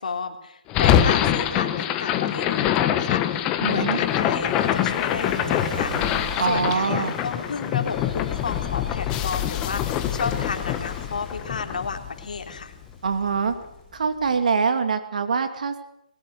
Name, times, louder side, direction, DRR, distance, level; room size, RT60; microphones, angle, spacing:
voice 1, 0.0-12.7, left 5 dB, 60° left, 5 dB, 3.5 m, -32 dB
sound 1, 0.7-12.9, left 11 dB, 20° left, 1.2 m, -24 dB
Gull seagull / Waves surf, 3.3-13.9, right 1 dB, 5° right, 4.5 m, -41 dB
voice 2, 3.6-4.0 6.4-7.1 13.0-13.5 13.9-15.8, right 5 dB, 60° right, 8 dB, 2.6 m, -24 dB
20.5 x 19.0 x 8.0 m, 0.76 s
hypercardioid pair, 155°, 5 cm